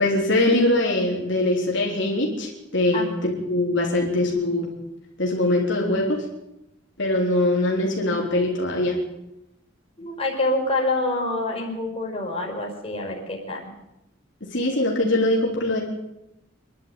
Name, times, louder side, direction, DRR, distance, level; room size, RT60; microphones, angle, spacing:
voice 1, 0.0-4.7 5.2-6.2 7.0-9.0 14.4-15.8, left 1 dB, 60° left, -1 dB, 4.2 m, -22 dB
voice 2, 10.0-13.7, left 2 dB, 30° left, 0 dB, 5.1 m, -26 dB
26.0 x 12.0 x 9.2 m, 0.89 s
head